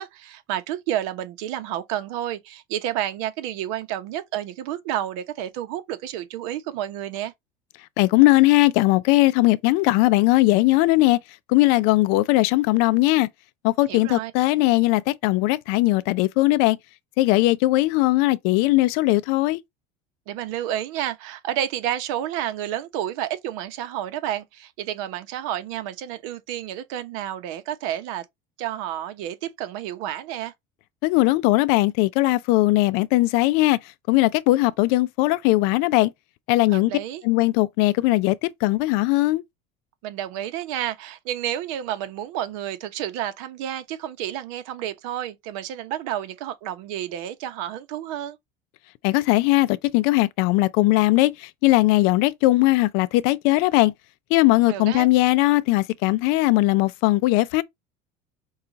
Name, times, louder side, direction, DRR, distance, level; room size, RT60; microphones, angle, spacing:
voice 1, 0.0-7.3 13.9-14.3 20.3-28.2 28.6-30.5 36.7-37.2 40.0-48.4 54.7-55.1, right 11 dB, 75° right, 0.9 m, -30 dB
voice 2, 8.0-11.2 11.5-13.3 13.6-16.8 17.2-19.6 31.0-33.8 34.1-36.1 36.5-36.9 37.2-39.4 49.0-51.3 51.6-53.9 54.3-57.6, left 19 dB, 65° left, 0.5 m, -19 dB
5.6 x 2.4 x 3.9 m
cardioid pair, 165°, 17 cm